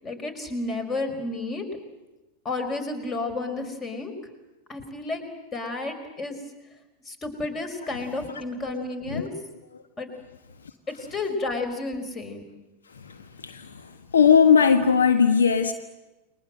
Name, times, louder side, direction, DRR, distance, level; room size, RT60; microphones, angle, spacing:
voice 1, 0.0-1.6 2.4-4.1 4.7-5.3 5.5-6.4 7.0-9.3 10.0-10.1 10.9-12.4, left 2 dB, 20° left, 8 dB, 5.0 m, -31 dB
voice 2, 14.1-15.7, left 6 dB, 70° left, 8 dB, 1.5 m, -18 dB
30.0 x 22.5 x 7.8 m, 1.1 s
figure-of-eight pair, 90°, 0 cm